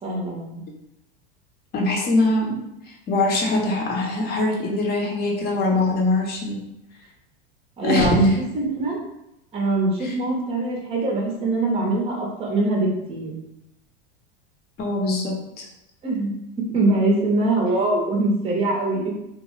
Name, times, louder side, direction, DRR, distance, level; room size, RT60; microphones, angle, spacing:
voice 1, 0.0-0.6 7.8-9.0 9.5-13.3 16.0-16.3 16.7-19.1, right 2 dB, 20° right, -1 dB, 0.7 m, -22 dB
voice 2, 1.7-2.6 3.1-6.6 7.8-8.2 10.0-10.1 14.8-15.7, left 2 dB, 35° left, -1 dB, 0.8 m, -22 dB
2.9 x 2.1 x 3.1 m, 0.87 s
supercardioid pair, 120°, 30 cm